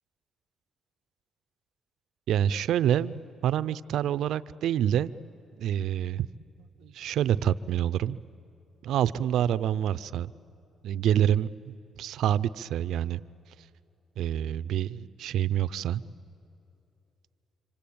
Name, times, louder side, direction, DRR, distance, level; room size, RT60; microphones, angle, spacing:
voice 1, 2.3-3.1 3.4-5.1 5.6-6.3 6.8-8.2 8.8-10.3 10.8-13.2 14.2-16.0, right 10 dB, 80° right, 16 dB, 0.5 m, -27 dB
26.5 x 26.0 x 8.6 m, 2.8 s
cardioid pair, 90°, 0 cm